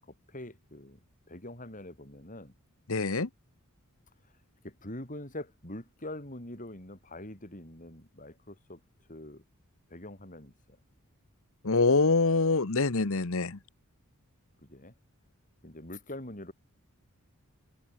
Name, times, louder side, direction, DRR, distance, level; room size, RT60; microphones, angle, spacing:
voice 1, 0.1-1.0 1.3-2.5 4.6-8.8 9.1-9.4 9.9-10.8 14.6-14.9 15.6-16.5, left 1 dB, 35° left, 5.1 m, -44 dB
voice 2, 2.9-3.3 11.6-13.6, left 3 dB, 65° left, 1.2 m, -25 dB
head